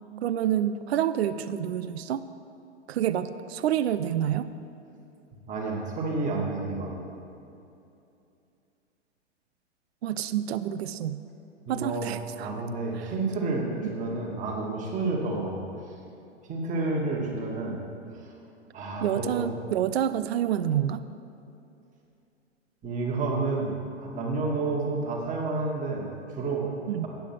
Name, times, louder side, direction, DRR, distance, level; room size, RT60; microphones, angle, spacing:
voice 1, 0.2-2.3 2.9-4.5 10.0-11.2 11.7-12.5 13.8-13.9 19.0-21.0 26.9-27.1, right 10 dB, 60° right, 12 dB, 0.5 m, -28 dB
voice 2, 5.5-6.9 11.6-12.1 12.4-15.6 16.5-17.8 18.1-18.4 18.7-19.5 22.8-26.7, right 3 dB, 20° right, -2 dB, 1.6 m, -30 dB
9.2 x 7.2 x 6.0 m, 2.7 s
figure-of-eight pair, 110°, 36 cm